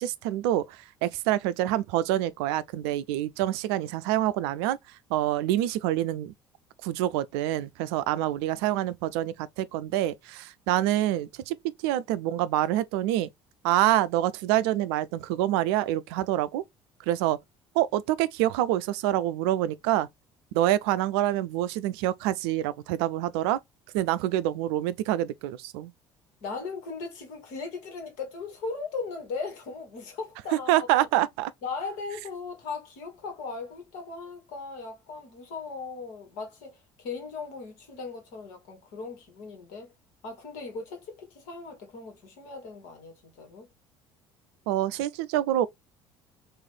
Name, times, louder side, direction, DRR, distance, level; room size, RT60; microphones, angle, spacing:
voice 1, 0.0-6.3 6.8-11.6 11.8-13.3 13.6-16.6 17.0-17.4 17.7-20.1 20.5-23.6 23.9-25.9 30.7-31.5 44.7-45.7, right 13 dB, 60° right, 0.4 m, -26 dB
voice 2, 26.4-31.1 31.6-39.9 40.2-43.7, left 4 dB, 60° left, 1.5 m, -38 dB
3.1 x 2.6 x 3.7 m
figure-of-eight pair, 55°, 15 cm